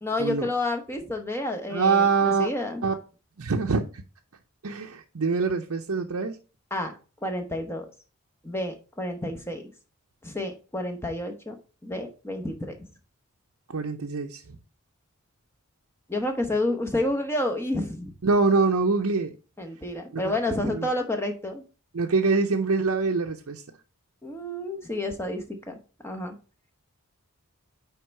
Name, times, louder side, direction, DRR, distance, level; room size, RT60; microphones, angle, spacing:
voice 1, 0.0-2.8 6.7-6.9 7.2-7.9 8.4-9.6 10.2-11.6 11.8-12.9 16.1-18.1 19.6-21.6 24.2-25.8 26.0-26.3, left 1 dB, 10° left, 1.0 m, -30 dB
voice 2, 1.7-2.5 2.8-2.9 3.4-3.8 4.6-6.4 13.7-14.4 18.2-19.3 20.1-20.2 20.7-20.9 21.9-23.6, right 4 dB, 80° right, 0.6 m, -24 dB
9.4 x 3.5 x 4.5 m
head